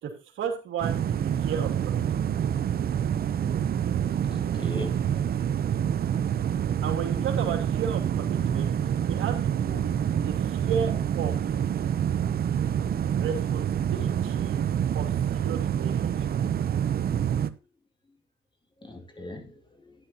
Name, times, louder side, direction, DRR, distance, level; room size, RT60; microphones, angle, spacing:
voice 1, 0.0-2.3 6.8-11.4 13.1-14.6 14.9-16.3, right 7 dB, 80° right, 2.5 m, -34 dB
sound 1, 0.8-17.5, right 9 dB, 50° right, 0.7 m, -27 dB
voice 2, 4.2-5.3 18.8-19.9, left 1 dB, 25° left, 2.5 m, -40 dB
12.5 x 9.8 x 2.9 m
cardioid pair, 90°, 20 cm